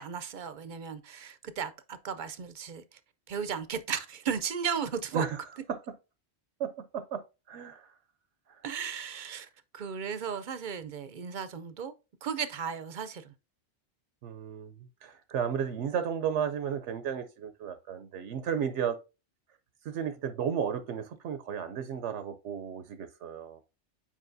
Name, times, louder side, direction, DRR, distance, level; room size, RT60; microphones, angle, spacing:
voice 1, 0.0-3.0 3.3-5.2 8.6-11.9 12.2-13.3, right 7 dB, 55° right, 0.6 m, -35 dB
voice 2, 6.6-7.9 8.5-8.6 14.2-19.0 19.8-23.6, right 8 dB, 80° right, 0.9 m, -34 dB
7.4 x 5.0 x 2.6 m
omnidirectional pair, 1.2 m